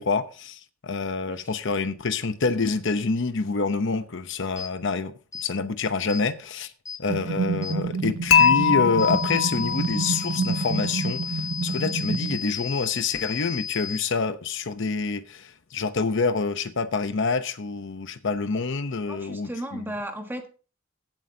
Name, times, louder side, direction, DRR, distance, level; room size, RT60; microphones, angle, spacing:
voice 1, 0.0-5.1 5.4-6.7 7.0-19.9, left 4 dB, 60° left, 0.8 m, -27 dB
sound 1, 4.6-4.7 5.3-5.5 6.1-6.3 6.9-7.0 7.6-7.8 8.4-8.5 9.0-14.0, left 7 dB, 15° left, 3.0 m, -34 dB
sound 2, 7.1-12.4, right 4 dB, 70° right, 0.6 m, -28 dB
Dishes pots and pans / Chink clink, 8.3-10.4, left 8 dB, 80° left, 1.2 m, -21 dB
voice 2, 19.1-20.5, right 1 dB, 10° right, 1.4 m, -34 dB
16.5 x 7.6 x 2.8 m
head